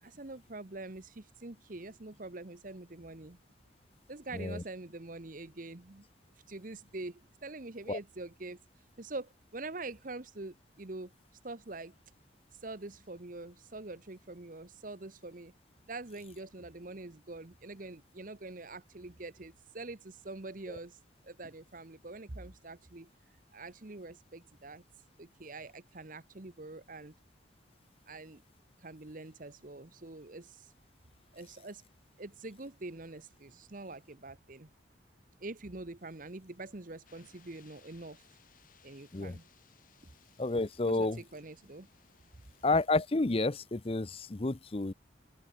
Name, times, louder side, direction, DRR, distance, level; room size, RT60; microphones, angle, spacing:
voice 1, 0.0-3.4 4.1-6.0 6.5-11.9 12.5-15.5 15.9-27.1 28.0-28.4 28.8-30.7 31.3-31.8 32.2-34.7 35.4-38.4 38.8-39.4 40.8-41.9, right 2 dB, 45° right, 1.1 m, -45 dB
voice 2, 4.3-4.6 7.9-8.0 20.7-20.8 39.1-39.3 40.4-41.2 42.6-44.9, left 2 dB, 30° left, 0.6 m, -30 dB
sound 1, 37.1-42.9, left 6 dB, 45° left, 6.0 m, -65 dB
open air
head